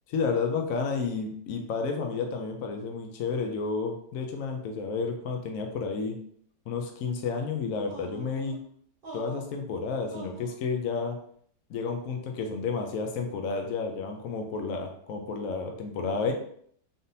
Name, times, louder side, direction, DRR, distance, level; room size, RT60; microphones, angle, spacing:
voice 1, 0.1-6.2 6.7-8.6 9.1-11.2 11.7-16.3, left 4 dB, 65° left, 3 dB, 0.8 m, -31 dB
sound 1, 7.8-8.6 9.0-9.6 10.1-10.6, right 2 dB, 40° right, 1.0 m, -44 dB
3.9 x 3.6 x 2.7 m, 0.62 s
omnidirectional pair, 1.8 m